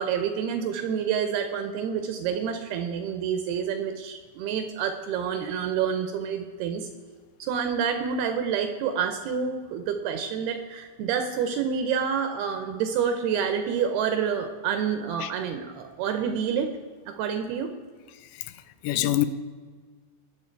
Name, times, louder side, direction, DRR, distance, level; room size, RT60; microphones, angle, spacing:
voice 1, 0.0-6.9 7.4-16.7 17.1-17.7, right 7 dB, 80° right, 2.4 m, -28 dB
voice 2, 18.8-19.3, left 14 dB, 85° left, 2.9 m, -25 dB
20.5 x 7.4 x 4.6 m
omnidirectional pair, 5.2 m